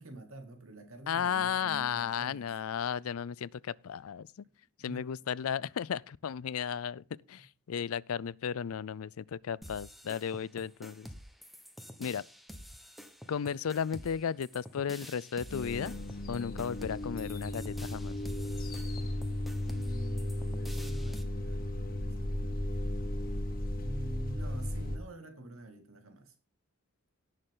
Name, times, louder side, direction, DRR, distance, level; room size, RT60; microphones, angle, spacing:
voice 1, 0.0-2.5 4.4-4.5 4.8-5.1 19.6-23.0 23.8-26.3, right 2 dB, 75° right, 2.4 m, -48 dB
voice 2, 1.1-4.3 4.8-11.1 12.0-12.3 13.3-15.9 16.3-18.1, left 7 dB, 80° left, 0.4 m, -34 dB
sound 1, 9.6-21.2, equal, ahead, 1.1 m, -49 dB
sound 2, 15.5-25.0, left 1 dB, 40° left, 1.9 m, -35 dB
17.5 x 6.6 x 3.8 m
head